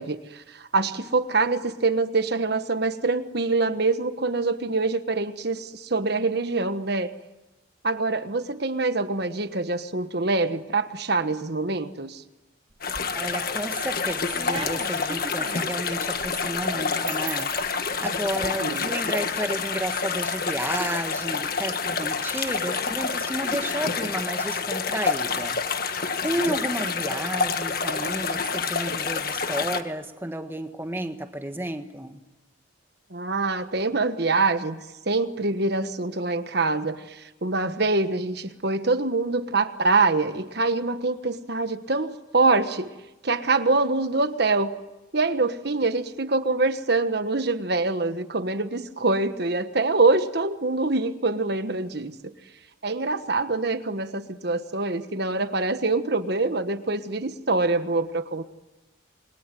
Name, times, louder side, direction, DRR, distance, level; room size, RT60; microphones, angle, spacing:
voice 1, 0.0-7.1 7.8-12.2 18.6-18.9 33.1-34.8 35.1-42.9 43.2-44.7 45.1-52.3 52.8-58.4, right 3 dB, 55° right, 10 dB, 1.3 m, -25 dB
sound 1, 12.7-13.4 13.8-18.5, right 4 dB, 25° right, 1.1 m, -39 dB
sound 2, 12.8-29.8, left 5 dB, 45° left, 1.6 m, -28 dB
voice 2, 13.1-32.2, right 1 dB, 10° right, 6 dB, 1.5 m, -32 dB
28.5 x 22.5 x 9.2 m, 1.1 s
head